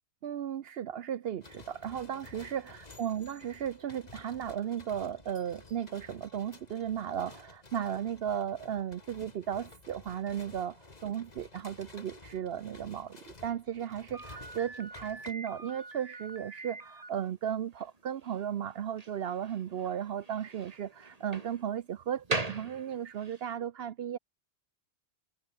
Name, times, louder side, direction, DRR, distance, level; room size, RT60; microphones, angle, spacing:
voice 1, 0.2-24.2, right 9 dB, 65° right, 0.9 m, -35 dB
sound 1, 1.4-15.3, left 3 dB, 40° left, 2.2 m, -53 dB
Slam, 14.1-23.5, right 2 dB, 35° right, 2.5 m, -42 dB
omnidirectional pair, 1.1 m